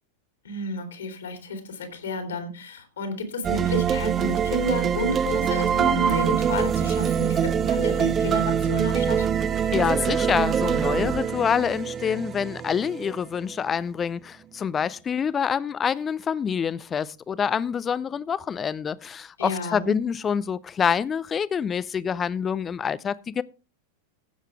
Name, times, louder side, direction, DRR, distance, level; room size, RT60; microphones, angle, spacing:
voice 1, 0.4-9.3 9.7-9.8 19.4-19.9, left 2 dB, 65° left, 3.1 m, -31 dB
sound 1, 3.4-13.6, right 8 dB, 25° right, 0.6 m, -24 dB
voice 2, 9.7-23.4, left 7 dB, 20° left, 0.5 m, -26 dB
15.5 x 7.4 x 3.5 m
figure-of-eight pair, 90°, 0 cm